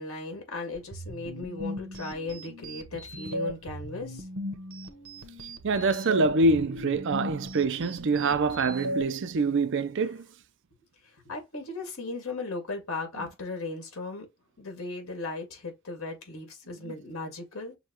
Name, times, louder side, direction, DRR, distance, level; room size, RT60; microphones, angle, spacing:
voice 1, 0.0-4.3 11.3-14.3 14.6-17.8, left 3 dB, 70° left, 2.1 m, -37 dB
sound 1, 0.7-9.0, equal, 80° right, 1.0 m, -37 dB
voice 2, 5.6-10.3 16.8-16.9, right 3 dB, 55° right, 0.5 m, -25 dB
6.3 x 2.3 x 2.9 m
head